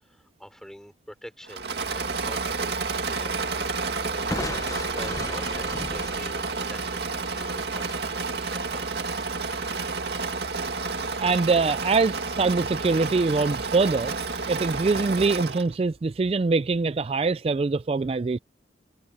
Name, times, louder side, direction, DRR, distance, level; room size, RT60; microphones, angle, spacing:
voice 1, 0.0-4.3 4.9-9.3, equal, 5° left, 3.8 m, -46 dB
Engine / Mechanisms, 1.5-15.7, right 4 dB, 65° right, 2.3 m, -30 dB
Crushing, 4.3-8.1, left 2 dB, 20° left, 0.7 m, -37 dB
voice 2, 11.2-14.1 14.5-18.4, right 4 dB, 30° right, 0.3 m, -23 dB
head